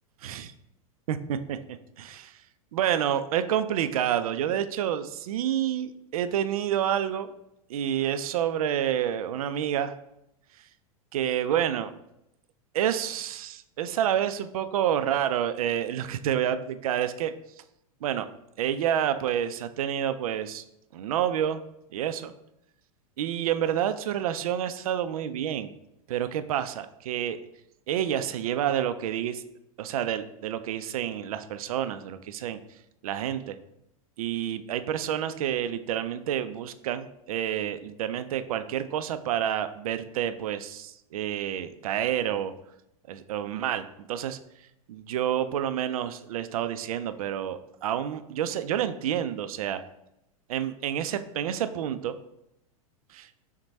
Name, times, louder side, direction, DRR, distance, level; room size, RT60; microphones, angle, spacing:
voice 1, 1.1-2.3 2.7-7.3 7.7-9.9 11.1-11.9 12.7-17.3 18.0-18.3 18.6-20.6 20.9-21.6 21.9-22.3 23.2-25.7 26.1-27.4 27.9-29.4 29.8-32.6 33.0-33.6 34.2-42.5 43.1-44.4 44.9-49.8 50.5-52.2 53.1-53.3, right 10 dB, 75° right, 11 dB, 0.4 m, -29 dB
5.9 x 2.2 x 4.1 m, 0.82 s
hypercardioid pair, 105°, 19 cm